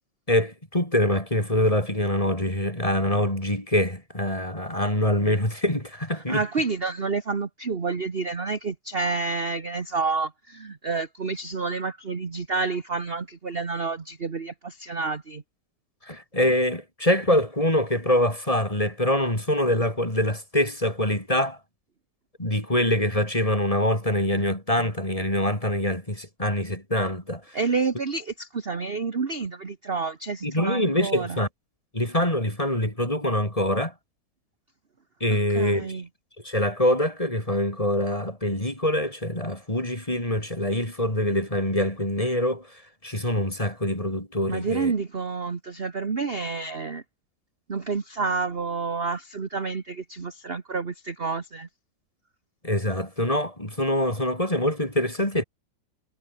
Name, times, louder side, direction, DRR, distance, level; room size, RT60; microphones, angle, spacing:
voice 1, 0.3-6.4 16.0-21.6 22.4-27.6 30.4-31.5 31.9-33.9 35.2-36.0 36.4-42.7 43.0-44.9 52.6-55.4, left 1 dB, 15° left, 6.4 m, -24 dB
voice 2, 6.1-15.4 24.3-24.4 27.5-31.4 35.3-36.1 44.5-47.0 47.7-51.7, right 4 dB, 35° right, 1.6 m, -29 dB
omnidirectional pair, 2.0 m